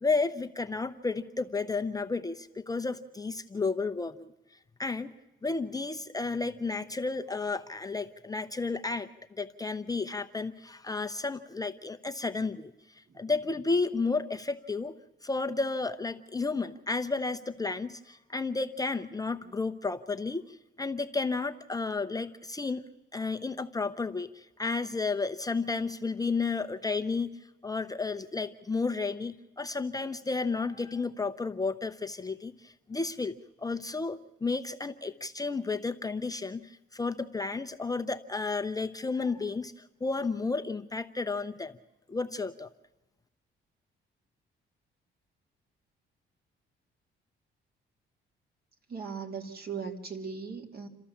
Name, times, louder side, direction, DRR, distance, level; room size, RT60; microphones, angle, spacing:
voice 1, 0.0-4.3 4.8-5.1 5.4-9.1 9.4-15.0 15.2-41.8 42.1-42.7, left 4 dB, 20° left, 8 dB, 0.7 m, -32 dB
voice 2, 48.9-50.9, right 5 dB, 50° right, 5 dB, 2.5 m, -38 dB
28.5 x 13.0 x 7.2 m, 1.0 s
cardioid pair, 90°, 20 cm